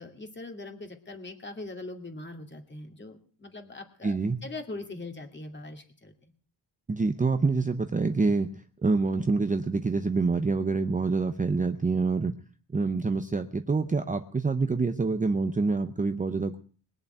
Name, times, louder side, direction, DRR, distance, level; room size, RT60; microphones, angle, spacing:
voice 1, 0.0-4.2 4.4-6.1, left 2 dB, 25° left, 5 dB, 2.6 m, -41 dB
voice 2, 4.0-4.4 6.9-8.5 8.8-12.3 12.7-16.6, right 4 dB, 20° right, 7 dB, 0.7 m, -26 dB
21.0 x 7.2 x 9.1 m, 0.43 s
wide cardioid pair, 160°, 45 cm